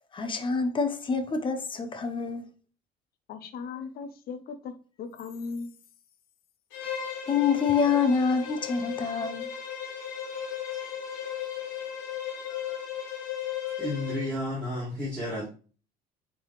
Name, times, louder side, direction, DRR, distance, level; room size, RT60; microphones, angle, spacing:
voice 1, 0.1-2.4 7.3-9.5, left 5 dB, 25° left, 0.9 m, -26 dB
voice 2, 3.3-5.7, left 5 dB, 50° left, 0.8 m, -38 dB
Bowed string instrument, 6.7-14.4, left 9 dB, 90° left, 2.1 m, -36 dB
voice 3, 13.8-15.5, left 1 dB, 5° left, 2.5 m, -32 dB
8.9 x 3.9 x 3.2 m
cardioid pair, 145°, 20 cm